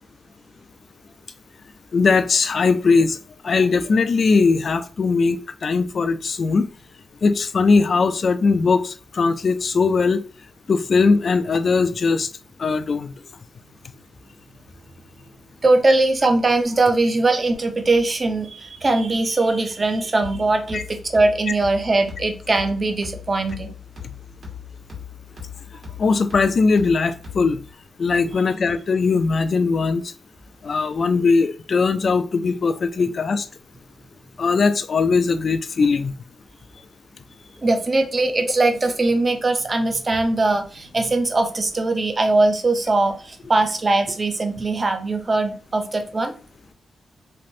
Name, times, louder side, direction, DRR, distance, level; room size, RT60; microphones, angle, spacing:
voice 1, 1.9-3.2 3.4-6.7 7.2-10.2 10.7-12.3 12.6-13.1 20.7-20.8 26.0-27.6 28.0-30.0 30.6-33.5 34.4-36.1, left 4 dB, 50° left, 0.3 m, -19 dB
voice 2, 15.6-23.7 37.6-46.3, right 2 dB, 30° right, 0.5 m, -21 dB
sound 1, 20.2-27.7, left 7 dB, 55° right, 1.3 m, -39 dB
3.2 x 2.5 x 2.7 m
cardioid pair, 110°, 0 cm